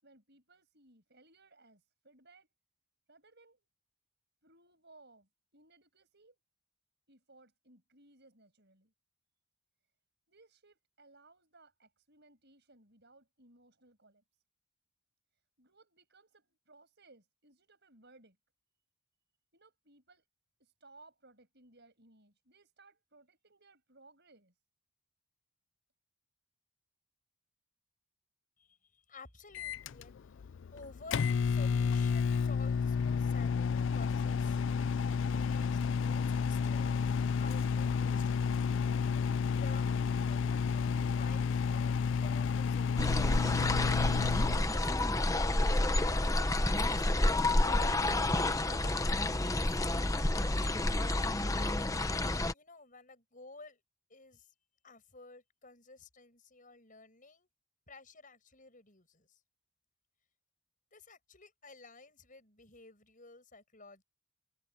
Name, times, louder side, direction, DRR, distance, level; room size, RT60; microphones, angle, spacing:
voice 1, 0.0-2.5 3.1-3.7 4.4-6.4 7.1-8.9 10.3-14.2 15.6-18.4 19.5-20.3 20.6-24.5, right 2 dB, 50° right, 7.4 m, -62 dB
voice 2, 28.6-30.3 30.7-35.0 35.2-37.0 37.4-38.7 39.0-39.9 40.2-43.2 43.9-48.0 48.7-50.1 51.4-51.7 52.5-53.8 54.1-54.5 54.8-57.5 57.9-59.4 60.9-64.0, left 3 dB, 35° left, 7.5 m, -53 dB
Microwave oven, 29.5-44.6, left 6 dB, 55° left, 0.4 m, -31 dB
sound 1, 43.0-52.5, left 2 dB, 15° left, 0.8 m, -29 dB
head